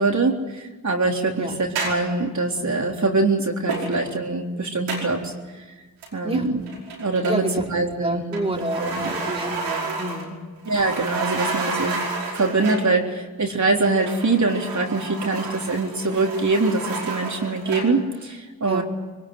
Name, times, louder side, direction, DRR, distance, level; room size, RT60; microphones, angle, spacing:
voice 1, 0.0-5.6 6.1-6.6 7.0-9.1 10.7-12.0 12.3-18.8, right 3 dB, 45° right, 1 dB, 3.8 m, -23 dB
sound 1, 1.8-2.2 3.7-4.2 4.9-5.2 6.0-6.4 6.7-7.8 8.3-10.4 10.6-12.9 13.8-18.0, right 3 dB, 90° right, 5.3 m, -31 dB
voice 2, 7.3-7.7 8.0-10.4 18.7-18.8, right 1 dB, 15° right, 1 dB, 3.7 m, -29 dB
21.5 x 20.0 x 9.6 m, 1.3 s
supercardioid pair, 40°, 41 cm